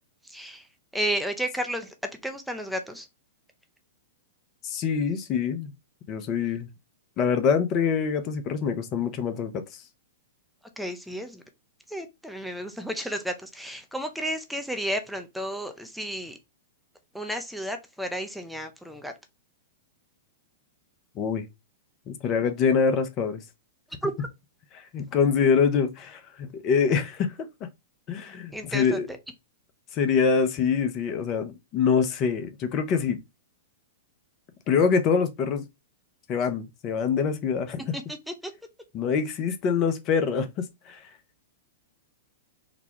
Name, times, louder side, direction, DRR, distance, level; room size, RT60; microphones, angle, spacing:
voice 1, 0.9-1.9 2.2-3.0 10.8-11.4 11.9-16.3 17.1-19.1 24.0-24.3 28.5-29.0, right 1 dB, ahead, 0.6 m, -32 dB
voice 2, 4.6-5.7 6.1-6.7 7.2-9.8 21.2-21.5 22.1-23.4 24.7-27.4 28.1-29.1 29.9-33.2 34.7-35.6 36.3-38.0 38.9-41.1, left 6 dB, 35° left, 0.7 m, -25 dB
4.0 x 2.3 x 3.0 m
figure-of-eight pair, 105°, 0 cm